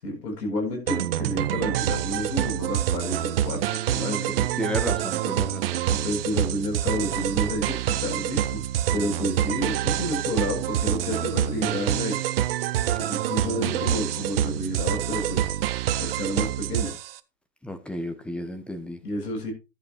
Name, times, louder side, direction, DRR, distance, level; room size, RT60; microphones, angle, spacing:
voice 1, 0.0-4.5 5.9-8.6 8.9-12.2 13.0-15.4 16.0-16.9 19.0-19.5, left 1 dB, 70° left, 7.9 m, -30 dB
sound 1, 0.9-17.2, right 11 dB, 35° right, 0.8 m, -26 dB
voice 2, 3.9-5.8 17.6-19.0, left 1 dB, ahead, 0.8 m, -33 dB
14.0 x 11.0 x 3.1 m
hypercardioid pair, 130°, 50 cm